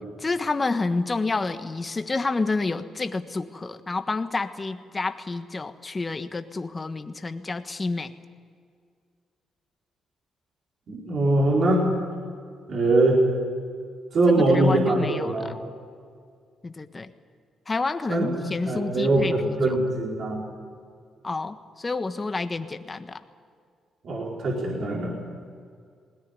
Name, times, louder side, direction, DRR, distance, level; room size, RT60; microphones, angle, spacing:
voice 1, 0.2-8.1 14.4-15.5 16.6-17.1 17.7-19.8 21.2-23.2, left 3 dB, 30° left, 9 dB, 1.5 m, -29 dB
voice 2, 10.9-11.9 12.7-13.2 14.1-15.5 18.1-18.3 18.6-20.4 24.0-25.1, right 2 dB, 60° right, -3 dB, 4.9 m, -22 dB
20.0 x 18.5 x 9.9 m, 2.2 s
supercardioid pair, 65°, 0 cm